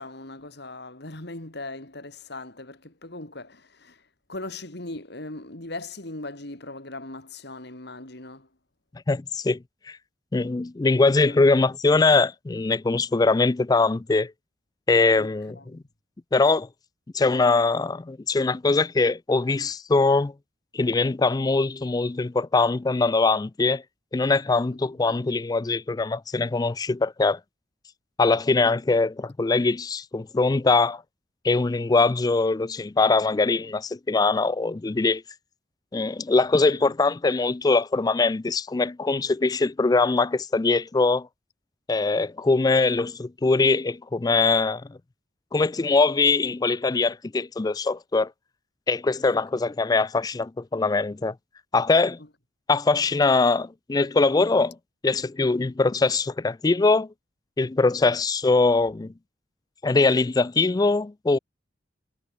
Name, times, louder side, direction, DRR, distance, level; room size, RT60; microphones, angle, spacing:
voice 1, 0.0-8.5 11.3-11.4 15.2-15.9 24.8-24.9 36.7-36.9 49.3-49.4 52.2-52.3, left 2 dB, 60° left, 3.3 m, -39 dB
voice 2, 9.1-10.0 10.3-14.3 14.9-15.8 16.3-16.7 17.1-20.3 20.7-23.8 24.1-27.4 28.2-31.0 31.4-35.2 35.9-41.3 41.9-45.0 45.5-48.3 48.9-51.3 51.7-52.2 52.7-54.8 55.0-57.1 57.6-59.1 59.8-61.4, left 3 dB, 20° left, 0.4 m, -22 dB
head